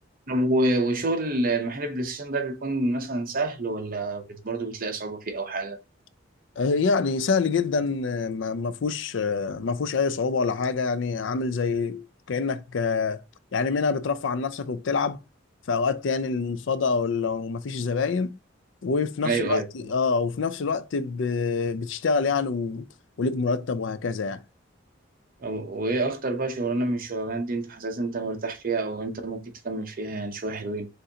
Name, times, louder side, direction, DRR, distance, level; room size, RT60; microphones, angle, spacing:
voice 1, 0.3-5.8 19.2-19.6 25.4-30.9, right 2 dB, 45° right, 0.8 m, -28 dB
voice 2, 6.6-13.2 13.5-15.2 15.7-18.4 18.8-22.8 23.2-24.4, left 4 dB, 65° left, 0.4 m, -26 dB
6.4 x 2.6 x 2.8 m
head